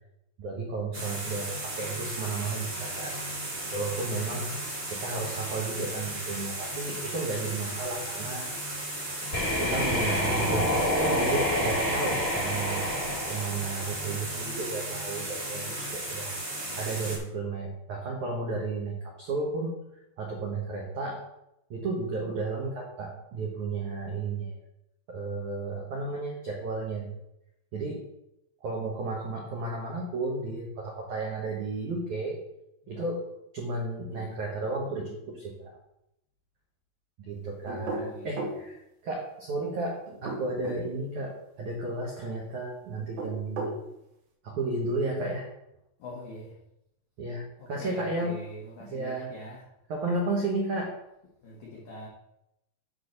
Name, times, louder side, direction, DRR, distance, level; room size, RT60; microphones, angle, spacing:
voice 1, 0.4-3.2 3.7-4.5 4.9-8.5 9.6-12.9 13.3-16.3 16.8-19.8 20.2-21.2 21.7-24.6 25.1-27.1 27.7-28.0 28.6-32.4 32.9-33.3 33.5-35.8 37.2-43.7 44.4-45.5 47.2-48.4 48.8-49.5 49.9-50.9, right 3 dB, 75° right, -2 dB, 1.7 m, -33 dB
sound 1, 0.9-17.2, right 1 dB, 30° right, 1.6 m, -35 dB
sound 2, 9.3-14.2, left 1 dB, 40° left, 1.1 m, -28 dB
voice 2, 37.7-38.4 46.0-46.5 47.8-49.6 51.4-52.1, left 1 dB, 85° left, -3 dB, 1.6 m, -42 dB
sound 3, 37.7-38.6 40.1-40.8 43.0-43.8, right 2 dB, 55° right, 3.2 m, -34 dB
9.5 x 4.2 x 6.6 m, 0.83 s
omnidirectional pair, 5.7 m